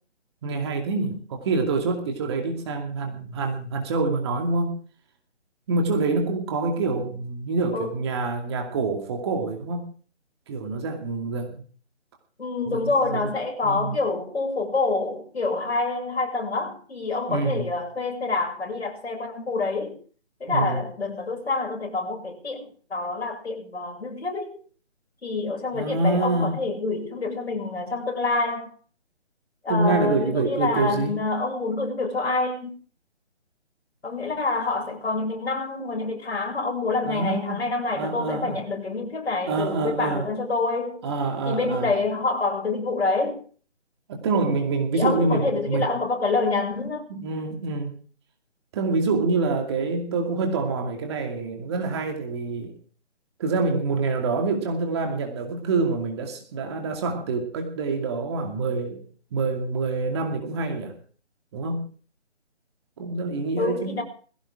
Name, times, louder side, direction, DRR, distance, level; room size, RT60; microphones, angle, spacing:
voice 1, 0.4-4.7 5.7-9.8 10.5-11.6 12.7-13.3 13.6-14.0 17.3-17.7 20.5-20.8 25.7-26.6 29.7-31.2 37.0-37.6 38.0-38.6 39.4-40.2 41.0-41.9 44.1-45.9 47.1-48.0 48.7-52.7 53.4-59.0 59.3-60.9 61.5-61.9 63.0-64.0, right 3 dB, 25° right, 2.5 m, -26 dB
voice 2, 12.4-20.0 20.4-24.6 25.2-28.7 29.6-32.8 34.0-41.0 41.5-43.4 44.9-47.1 63.6-64.0, left 3 dB, 65° left, 7.3 m, -27 dB
20.5 x 16.5 x 3.8 m
figure-of-eight pair, 160°, 35 cm